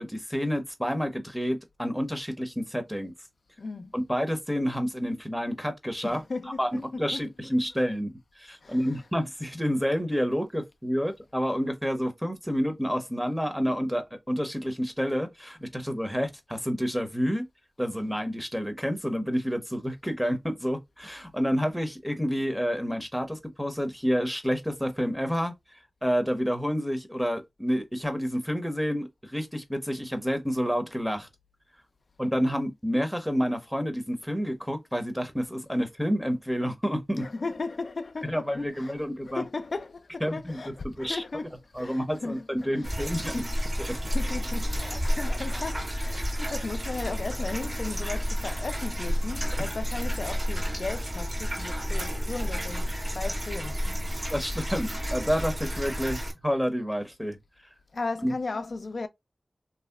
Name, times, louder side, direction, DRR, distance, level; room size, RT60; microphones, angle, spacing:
voice 1, 0.0-3.1 3.9-6.2 6.6-8.1 8.4-17.5 17.8-25.5 26.0-31.3 32.2-37.3 38.2-39.4 40.2-41.2 41.7-43.4 43.9-44.0 48.0-48.2 54.3-57.4 58.2-58.3, equal, ahead, 0.8 m, -29 dB
voice 2, 3.6-3.9 6.0-7.3 8.6-8.8 37.2-38.9 39.3-42.5 42.7-43.5 43.8-52.9 53.1-54.2 57.9-59.1, left 3 dB, 70° left, 0.3 m, -36 dB
sound 1, 42.8-56.3, equal, 45° right, 1.5 m, -31 dB
3.0 x 2.7 x 2.3 m
wide cardioid pair, 50°, 0 cm